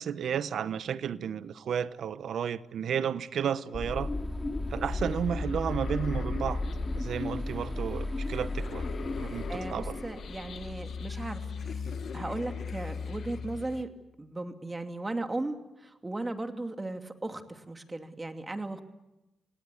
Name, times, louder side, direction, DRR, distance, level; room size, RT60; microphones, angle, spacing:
voice 1, 0.0-4.1 4.7-6.6 6.9-8.9 9.2-10.0, right 8 dB, 70° right, 0.9 m, -32 dB
sound 1, 3.7-11.2, left 2 dB, 25° left, 2.7 m, -34 dB
sound 2, 4.9-13.8, left 6 dB, 65° left, 1.2 m, -41 dB
voice 2, 9.5-11.8 12.1-13.9 14.2-18.8, right 2 dB, 20° right, 2.6 m, -36 dB
28.0 x 18.5 x 8.4 m
cardioid pair, 65°, 0 cm